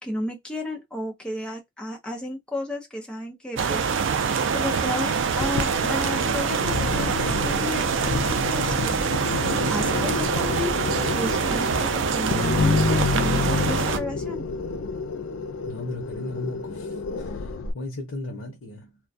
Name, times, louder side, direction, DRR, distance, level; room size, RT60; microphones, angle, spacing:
voice 1, 0.0-4.2 4.5-9.4 9.7-10.7 11.1-14.5, left 1 dB, 5° left, 0.5 m, -33 dB
sound 1, 3.6-14.0, right 6 dB, 65° right, 0.4 m, -25 dB
sound 2, 5.4-17.7, left 4 dB, 70° left, 0.4 m, -28 dB
voice 2, 15.6-19.0, left 1 dB, 85° left, 0.7 m, -36 dB
2.3 x 2.1 x 2.5 m
head